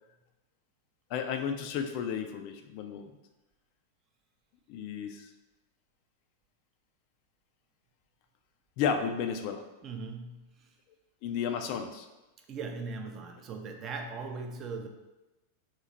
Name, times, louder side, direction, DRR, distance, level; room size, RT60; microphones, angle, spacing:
voice 1, 1.1-3.1 4.7-5.3 8.8-9.7 11.2-12.1, left 7 dB, 45° left, 6 dB, 0.3 m, -33 dB
voice 2, 9.8-10.7 12.5-14.9, right 4 dB, 30° right, 4 dB, 0.5 m, -39 dB
2.9 x 2.8 x 3.7 m, 1.1 s
figure-of-eight pair, 90°, 0 cm